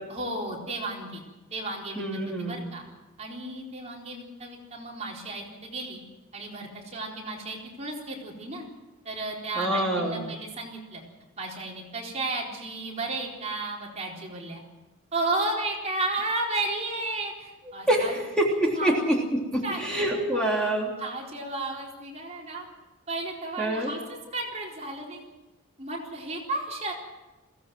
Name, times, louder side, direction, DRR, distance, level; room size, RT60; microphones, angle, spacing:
voice 1, 0.1-1.2 1.5-2.0 2.4-2.8 3.2-6.0 6.3-8.7 9.0-11.0 11.4-14.6 15.1-18.2 18.8-19.0 19.6-19.8 20.3-20.7 21.0-22.7 23.1-24.0 24.3-25.2 25.8-26.9, right 2 dB, 30° right, -2 dB, 4.1 m, -33 dB
voice 2, 2.0-2.6 9.5-10.2 17.9-19.2 19.5-20.9 23.6-23.9, right 1 dB, 5° left, -2 dB, 3.3 m, -26 dB
21.5 x 17.0 x 7.8 m, 1.1 s
head